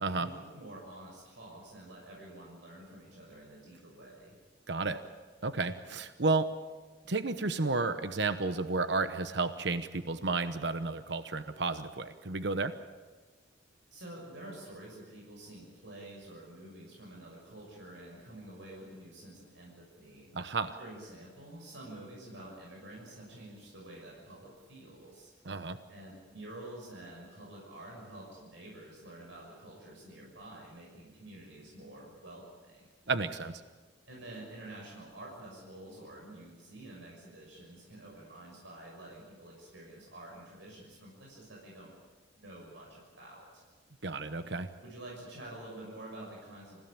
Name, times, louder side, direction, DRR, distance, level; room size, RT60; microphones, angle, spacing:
voice 1, 0.0-4.4 13.9-20.3 20.8-25.3 25.9-32.9 34.1-41.9 42.3-43.6 44.8-46.8, right 1 dB, 90° right, -3 dB, 6.5 m, -49 dB
voice 2, 4.7-5.0 5.4-6.5 7.1-12.7 20.3-20.8 25.4-25.8 33.1-33.6 44.0-44.7, right 3 dB, 70° right, 10 dB, 1.0 m, -32 dB
28.0 x 16.5 x 8.9 m, 1.3 s
head